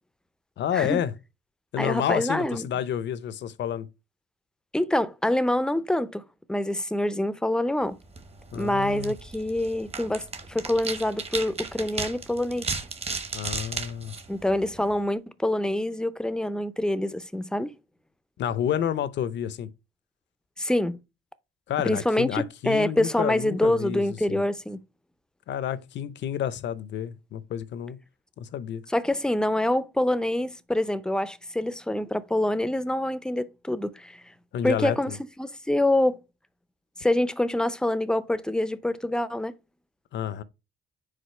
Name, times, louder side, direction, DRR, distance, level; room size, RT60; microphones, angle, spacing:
voice 1, 0.6-1.1 1.7-3.9 8.5-9.1 13.3-14.2 18.4-19.7 21.7-24.4 25.5-28.0 28.4-28.8 34.5-35.2 40.1-40.4, left 9 dB, 65° left, 0.6 m, -29 dB
voice 2, 1.8-2.7 4.7-6.2 6.5-8.0 8.5-12.7 14.3-17.7 20.6-21.0 21.8-24.8 28.9-34.2 34.6-35.1 35.4-36.2 37.0-39.5, left 1 dB, 5° left, 0.5 m, -26 dB
sound 1, 8.0-15.0, right 4 dB, 30° right, 1.0 m, -36 dB
5.0 x 3.7 x 5.5 m
cardioid pair, 90°, 20 cm